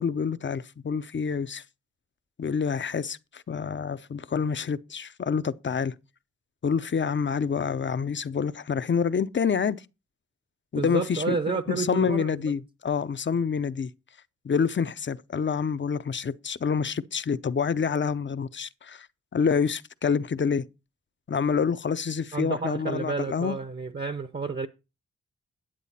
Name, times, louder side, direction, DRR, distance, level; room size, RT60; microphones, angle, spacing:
voice 1, 0.0-1.6 2.4-5.9 6.6-9.8 10.7-13.9 14.4-19.1 19.3-20.7 21.3-23.6, left 6 dB, 40° left, 0.6 m, -27 dB
voice 2, 10.8-12.3 22.3-24.7, right 4 dB, 35° right, 0.8 m, -30 dB
10.0 x 8.1 x 4.1 m
cardioid pair, 70°, 29 cm